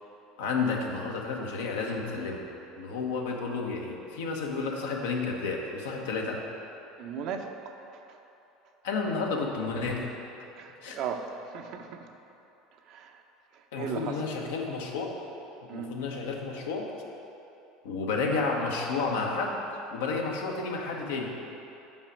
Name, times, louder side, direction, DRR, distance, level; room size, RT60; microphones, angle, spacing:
voice 1, 0.4-2.5 2.8-6.4 8.8-10.1 10.8-11.0 13.7-15.2 15.7-16.9 17.8-19.6 19.9-21.3, left 4 dB, 80° left, 0 dB, 0.9 m, -31 dB
voice 2, 7.0-7.7 8.1-8.2 10.6-12.1 12.9-13.2 13.5-14.2 15.7-16.0, right 7 dB, 60° right, 5 dB, 0.6 m, -37 dB
5.3 x 5.0 x 6.0 m, 3.0 s
hypercardioid pair, 80°, 0 cm